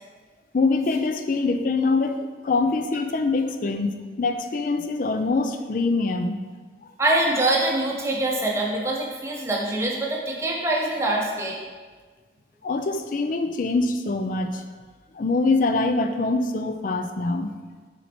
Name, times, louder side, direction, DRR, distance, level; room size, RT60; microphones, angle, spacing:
voice 1, 0.5-2.2 2.4-6.4 12.6-14.6 15.1-17.5, left 3 dB, 45° left, 7 dB, 0.4 m, -24 dB
voice 2, 7.0-11.7, right 2 dB, 15° right, -2 dB, 0.8 m, -24 dB
5.7 x 4.3 x 4.4 m, 1.4 s
head